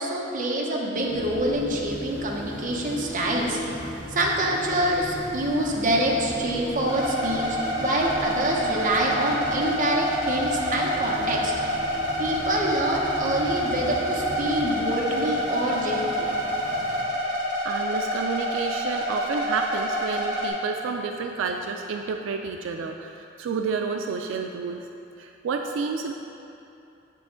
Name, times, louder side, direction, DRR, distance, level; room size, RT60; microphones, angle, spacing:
voice 1, 0.0-3.6 4.1-11.5 12.2-16.3, right 1 dB, 45° right, -2 dB, 0.9 m, -26 dB
Stream, 1.0-17.0, right 1 dB, 70° right, 0.9 m, -44 dB
sound 1, 1.1-14.7, equal, 80° left, 1.4 m, -38 dB
sound 2, 6.9-20.5, equal, 20° right, 1.3 m, -28 dB
voice 2, 17.6-24.8 25.2-26.1, right 5 dB, 85° right, 4 dB, 0.3 m, -30 dB
7.0 x 5.6 x 3.7 m, 2.8 s
head